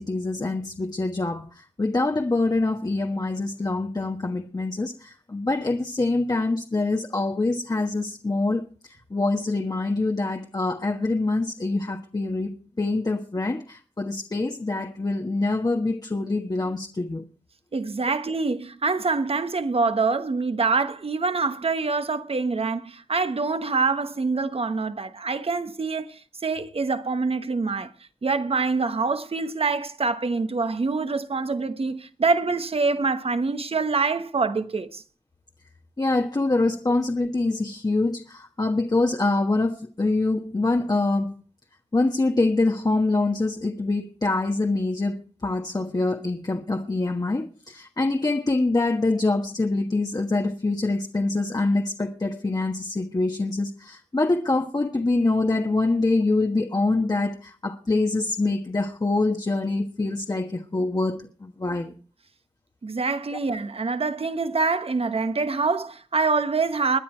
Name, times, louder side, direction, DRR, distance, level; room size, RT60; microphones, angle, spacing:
voice 1, 0.0-8.6 9.1-12.5 12.8-17.2 36.0-41.3 41.9-45.2 45.4-61.9, left 2 dB, 35° left, 1.3 m, -25 dB
voice 2, 17.7-27.9 28.2-35.0 62.8-67.0, right 4 dB, 60° right, 1.3 m, -25 dB
21.5 x 9.5 x 4.5 m
cardioid pair, 40°, 11 cm